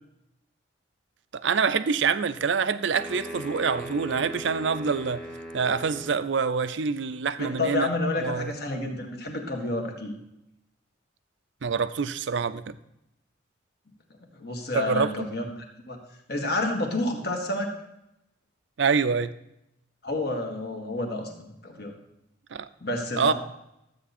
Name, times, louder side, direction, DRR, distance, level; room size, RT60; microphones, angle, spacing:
voice 1, 1.3-5.2 5.5-7.9 8.2-8.5 11.6-12.8 14.7-15.3 18.8-19.3 22.5-22.7 23.2-23.3, right 5 dB, 65° right, 0.5 m, -26 dB
sound 1, 2.9-6.3, equal, 5° left, 1.2 m, -39 dB
voice 2, 7.4-10.1 14.3-15.5 15.9-16.0 16.3-17.7 20.0-21.9 22.8-23.3, left 2 dB, 55° left, 1.8 m, -29 dB
12.5 x 8.3 x 4.2 m
head